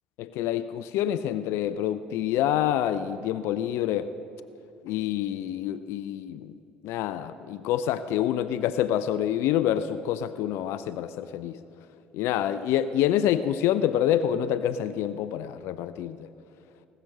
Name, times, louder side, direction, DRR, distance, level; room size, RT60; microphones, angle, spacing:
voice 1, 0.2-4.1 4.8-6.6 6.8-11.6 12.1-16.3, left 11 dB, 60° left, 13 dB, 0.4 m, -27 dB
19.0 x 6.7 x 7.4 m, 2.7 s
figure-of-eight pair, 55°, 5 cm